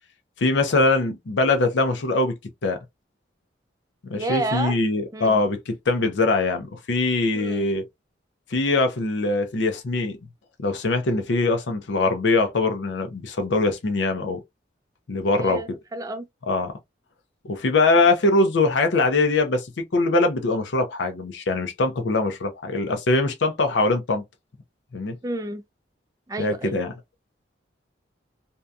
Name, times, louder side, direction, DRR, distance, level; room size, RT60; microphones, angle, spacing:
voice 1, 0.4-2.3 2.6-2.8 4.1-7.8 8.5-10.2 10.6-14.4 15.1-15.6 16.5-16.7 17.4-24.2 24.9-25.2 26.4-26.9, left 2 dB, 75° left, 0.5 m, -22 dB
voice 2, 4.1-4.8 5.1-5.4 7.3-7.6 15.3-16.3 25.2-25.6 26.3-26.8, right 2 dB, 20° right, 0.3 m, -30 dB
2.7 x 2.2 x 2.3 m
head